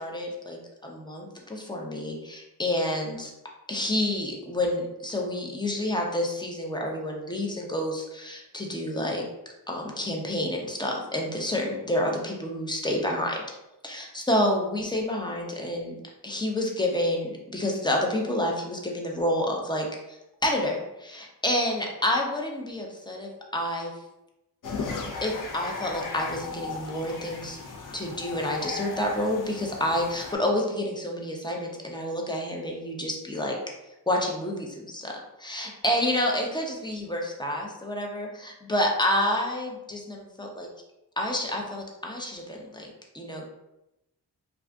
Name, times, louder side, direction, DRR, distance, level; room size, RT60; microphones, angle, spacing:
voice 1, 0.0-3.3 3.7-9.2 9.7-13.4 13.8-15.9 16.2-19.8 20.4-23.9 25.2-27.6 27.9-33.6 34.1-35.1 35.4-40.7 41.2-42.9 43.1-43.4, left 1 dB, 10° left, 0 dB, 0.6 m, -29 dB
sound 1, 24.6-30.4, left 4 dB, 50° left, 0.7 m, -36 dB
2.4 x 2.4 x 3.4 m, 0.91 s
cardioid pair, 65°, 41 cm